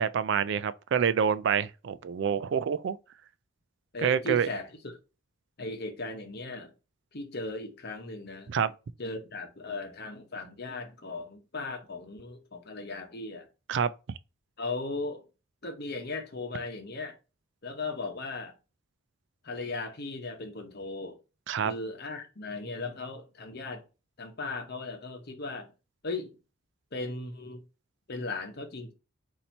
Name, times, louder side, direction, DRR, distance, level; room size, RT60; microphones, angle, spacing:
voice 1, 0.0-3.0 4.0-4.5 8.5-8.7 13.7-13.9 21.5-21.7, right 7 dB, 55° right, 0.3 m, -27 dB
voice 2, 3.9-5.0 5.6-6.7 7.1-8.5 9.0-13.5 14.6-15.3 15.6-17.2 17.6-18.5 19.4-21.2 21.6-23.8 24.2-25.7 26.0-26.4 26.9-27.6 28.1-28.9, left 3 dB, 50° left, 0.9 m, -37 dB
4.3 x 2.7 x 4.3 m
head